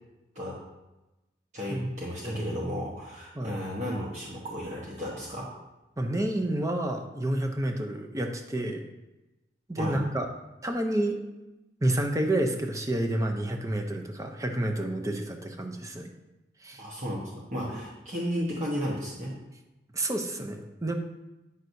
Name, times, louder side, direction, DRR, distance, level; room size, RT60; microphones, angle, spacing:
voice 1, 1.5-5.5 9.8-10.0 16.8-19.3, equal, 40° right, -5 dB, 1.1 m, -34 dB
voice 2, 2.2-2.7 3.4-3.6 6.0-8.8 9.7-10.3 10.6-11.2 11.8-16.1 16.6-16.8 19.9-20.9, right 1 dB, 20° right, 4 dB, 0.6 m, -29 dB
9.4 x 6.1 x 2.7 m, 1.0 s
head